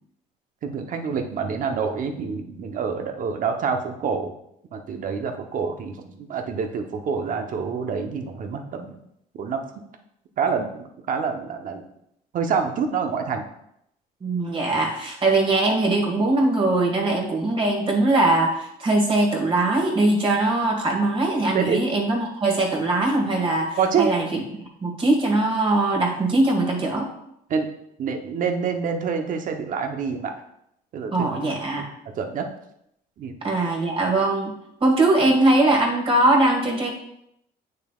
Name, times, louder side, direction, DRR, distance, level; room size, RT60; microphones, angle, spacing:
voice 1, 0.6-4.3 4.7-8.9 9.4-9.6 10.4-11.8 12.3-13.5 21.5-21.8 23.8-24.1 27.5-27.7 28.0-30.3 30.9-31.1 32.1-32.5 33.2-33.3, right 6 dB, 50° right, 5 dB, 1.0 m, -26 dB
voice 2, 14.2-27.1 31.1-31.9 33.4-34.5 34.8-36.9, right 2 dB, 35° right, 0 dB, 2.0 m, -21 dB
8.5 x 6.6 x 2.4 m, 0.77 s
cardioid pair, 110°, 17 cm